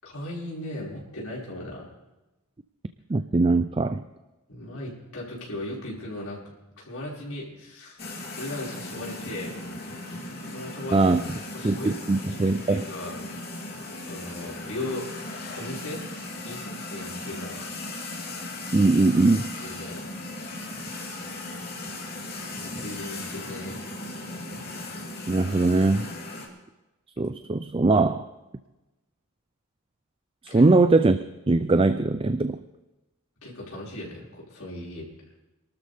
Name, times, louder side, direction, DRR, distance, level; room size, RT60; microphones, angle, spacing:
voice 1, 0.0-1.9 4.5-6.4 6.8-8.0 8.4-9.5 10.5-11.1 11.5-12.0 12.3-13.2 13.5-15.1 15.6-17.7 19.6-20.1 22.5-23.8 30.5-30.6 33.4-35.0, left 1 dB, 80° left, -5 dB, 5.7 m, -37 dB
voice 2, 3.1-4.0 10.9-11.2 11.6-12.8 18.7-19.5 25.3-26.1 27.2-28.3 30.4-31.2 31.5-32.6, right 3 dB, 25° right, 11 dB, 0.4 m, -21 dB
sound 1, 8.0-26.5, left 2 dB, 45° left, 3.1 m, -37 dB
26.5 x 13.0 x 3.5 m, 1.0 s
head